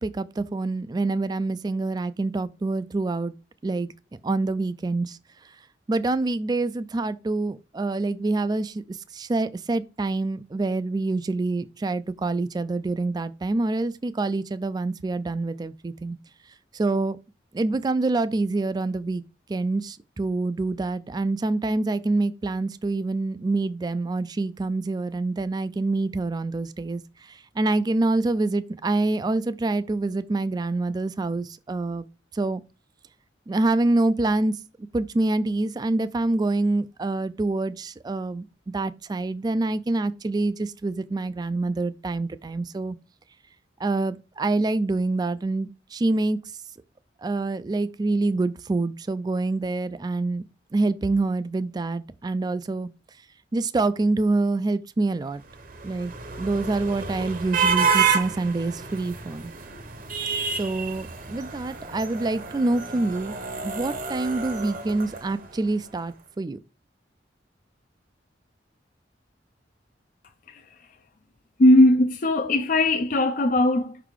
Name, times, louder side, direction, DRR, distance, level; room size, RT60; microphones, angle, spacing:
voice 1, 0.0-3.3 3.6-3.9 4.2-5.2 5.9-16.2 16.7-17.2 17.5-19.2 19.5-32.0 32.3-32.6 33.5-34.6 34.9-43.0 43.8-46.4 47.2-50.4 50.7-52.9 53.5-55.4 55.8-59.5 60.6-63.4 63.6-66.6, right 2 dB, 20° right, 0.3 m, -26 dB
sound 1, 55.4-65.7, right 5 dB, 50° right, 0.8 m, -29 dB
voice 2, 71.6-74.0, left 1 dB, 45° left, 0.5 m, -18 dB
5.6 x 4.0 x 4.6 m
head